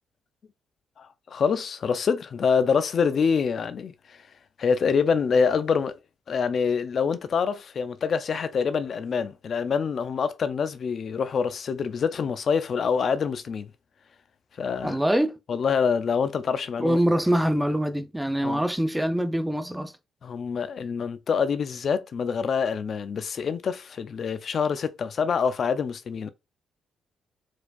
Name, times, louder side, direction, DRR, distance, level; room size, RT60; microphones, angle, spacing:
voice 1, 1.0-4.2 4.6-6.0 6.3-13.7 14.6-15.0 15.5-17.0 18.4-18.6 20.2-26.3, left 6 dB, 50° left, 0.4 m, -26 dB
voice 2, 14.8-15.4 16.8-19.9, equal, 5° right, 0.5 m, -24 dB
4.5 x 4.2 x 2.3 m
cardioid pair, 90°, 0 cm